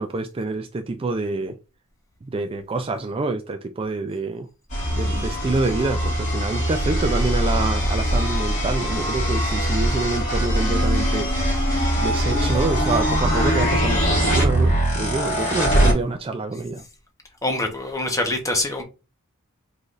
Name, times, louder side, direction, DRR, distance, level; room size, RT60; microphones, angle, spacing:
voice 1, 0.0-1.6 2.2-4.5 4.9-11.3 12.0-16.8, right 3 dB, 25° right, 0.4 m, -26 dB
sound 1, 4.7-15.9, equal, 35° left, 2.4 m, -22 dB
voice 2, 17.4-18.8, left 1 dB, 15° left, 1.1 m, -24 dB
4.9 x 3.8 x 2.5 m
head